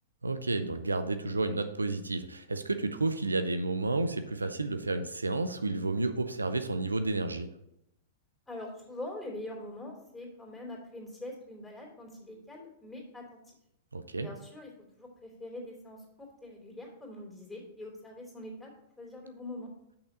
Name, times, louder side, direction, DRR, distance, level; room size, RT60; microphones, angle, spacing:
voice 1, 0.2-7.5 13.9-14.3, right 3 dB, 85° right, 9 dB, 0.5 m, -31 dB
voice 2, 8.5-13.5 14.2-14.7 15.0-16.0 16.4-18.7 19.0-19.7, left 1 dB, 10° left, -1 dB, 2.9 m, -43 dB
6.4 x 5.8 x 5.4 m, 0.83 s
figure-of-eight pair, 105°, 0 cm